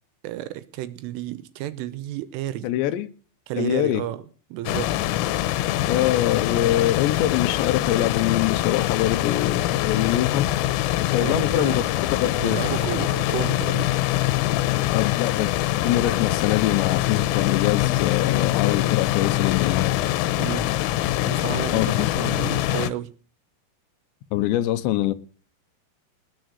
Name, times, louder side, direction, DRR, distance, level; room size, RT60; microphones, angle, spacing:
voice 1, 0.2-2.7 3.5-4.2 4.5-5.0 11.2-11.8 12.4-14.0 20.4-20.7 21.2-23.2, right 14 dB, 80° right, 3.5 m, -31 dB
voice 2, 2.6-3.1 3.6-4.0 5.9-10.5 11.0-11.8 12.2-12.6 14.9-15.5 15.8-20.0 21.7-22.1 24.3-25.1, left 13 dB, 75° left, 2.9 m, -24 dB
sound 1, 4.7-22.9, left 15 dB, 90° left, 3.5 m, -24 dB
20.0 x 7.5 x 6.5 m
omnidirectional pair, 5.8 m